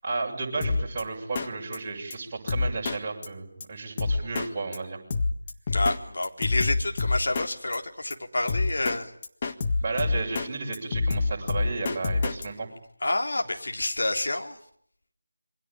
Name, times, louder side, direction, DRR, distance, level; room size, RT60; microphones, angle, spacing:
voice 1, 0.0-5.0 9.8-12.7, right 3 dB, 20° right, -4 dB, 7.5 m, -33 dB
Drum kit, 0.6-1.0 1.4-1.5 1.7-1.8 2.1-2.2 2.5-3.0 3.2-3.3 3.6-3.7 4.0-4.5 4.7-4.8 5.1-6.0 6.2-7.5 7.7-7.8 8.1-8.2 8.5-9.0 9.2-10.5 10.7-12.5, left 3 dB, 25° left, 1.7 m, -26 dB
voice 2, 5.7-9.1 13.0-14.6, left 2 dB, 55° left, 3 dB, 3.8 m, -28 dB
27.5 x 23.5 x 9.0 m, 0.65 s
figure-of-eight pair, 165°, 0 cm